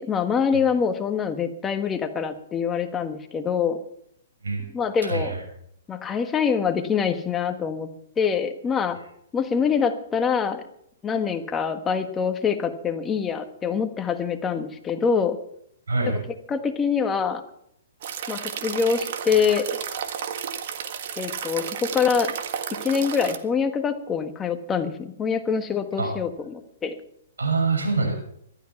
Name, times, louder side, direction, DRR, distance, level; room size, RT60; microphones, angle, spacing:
voice 1, 0.0-3.8 4.7-5.3 5.9-7.9 8.2-9.0 9.3-10.6 11.0-15.4 16.5-17.4 18.3-19.7 21.2-22.3 22.8-26.9, left 6 dB, 15° left, 7 dB, 1.4 m, -25 dB
voice 2, 5.0-5.4 15.9-16.2 26.0-26.1 27.4-28.1, right 3 dB, 90° right, 1 dB, 6.6 m, -24 dB
sound 1, 18.0-23.4, right 8 dB, 55° right, 1.6 m, -32 dB
15.0 x 12.5 x 5.9 m, 0.71 s
hypercardioid pair, 140°, 0 cm